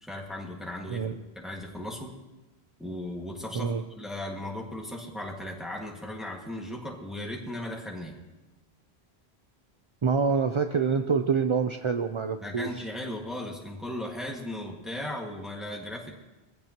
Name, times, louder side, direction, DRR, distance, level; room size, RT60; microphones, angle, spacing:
voice 1, 0.0-1.1 1.4-2.1 2.8-8.2 12.4-16.1, left 1 dB, ahead, -1 dB, 1.8 m, -37 dB
voice 2, 10.0-12.9, right 5 dB, 40° right, 7 dB, 0.5 m, -26 dB
21.5 x 15.5 x 2.9 m, 1.1 s
omnidirectional pair, 1.1 m